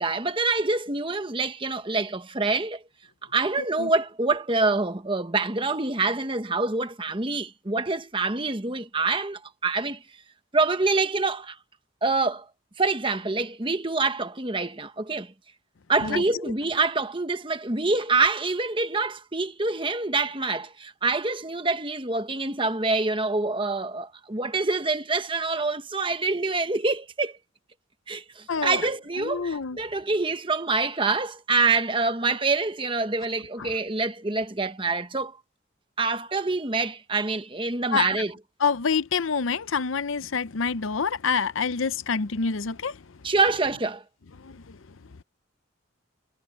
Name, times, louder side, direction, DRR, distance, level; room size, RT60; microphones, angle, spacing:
voice 1, 0.0-2.8 3.3-10.0 10.5-11.6 12.0-12.4 12.8-15.3 15.9-27.4 28.1-35.4 36.0-38.4 43.2-44.0, right 3 dB, 25° right, 1.2 m, -26 dB
voice 2, 29.2-29.8 37.9-38.1 38.6-42.9, left 5 dB, 70° left, 0.7 m, -26 dB
head